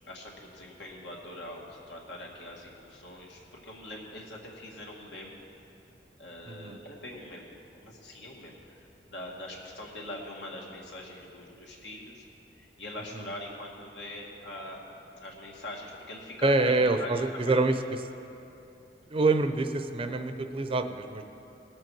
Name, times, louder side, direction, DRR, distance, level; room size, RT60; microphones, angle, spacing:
voice 1, 0.1-5.4 6.2-12.3 12.6-14.8 15.1-17.2 17.5-17.6, left 1 dB, 85° left, -2 dB, 2.1 m, -43 dB
voice 2, 6.5-6.8 13.2-13.3 16.4-17.8 19.1-21.2, right 3 dB, 30° right, 8 dB, 0.5 m, -26 dB
19.0 x 7.6 x 4.7 m, 2.9 s
head